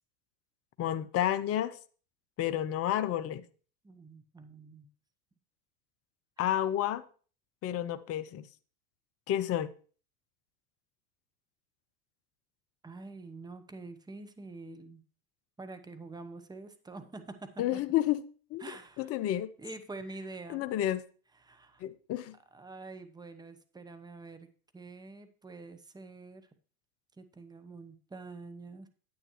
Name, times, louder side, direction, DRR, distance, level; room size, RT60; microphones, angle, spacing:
voice 1, 0.8-1.8 2.4-3.4 6.4-7.0 7.6-8.5 9.3-9.7 17.6-18.2 18.5-18.6 19.0-19.5 20.5-21.0 21.8-22.4, left 12 dB, 30° left, 0.6 m, -30 dB
voice 2, 3.8-4.9 6.4-6.6 12.8-15.0 15.6-17.8 18.6-19.1 19.6-20.7 21.4-21.8 22.5-24.5 24.7-26.5 27.2-28.9, right 3 dB, 10° right, 0.9 m, -46 dB
9.4 x 8.7 x 3.0 m
hypercardioid pair, 95°, 47 cm